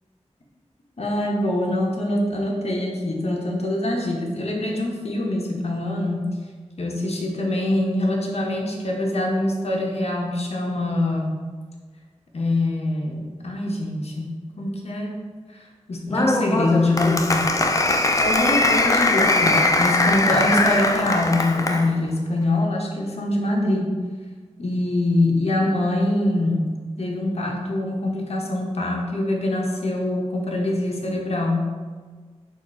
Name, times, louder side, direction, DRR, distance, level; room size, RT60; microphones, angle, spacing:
voice 1, 1.0-6.4 6.8-11.4 12.3-15.2 15.5-17.5 18.2-23.9 24.6-26.7 27.0-31.7, left 1 dB, 60° left, -1 dB, 0.8 m, -24 dB
Applause, 16.1-21.9, left 2 dB, 30° left, 0.3 m, -21 dB
4.7 x 2.4 x 4.1 m, 1.5 s
wide cardioid pair, 80°, 12 cm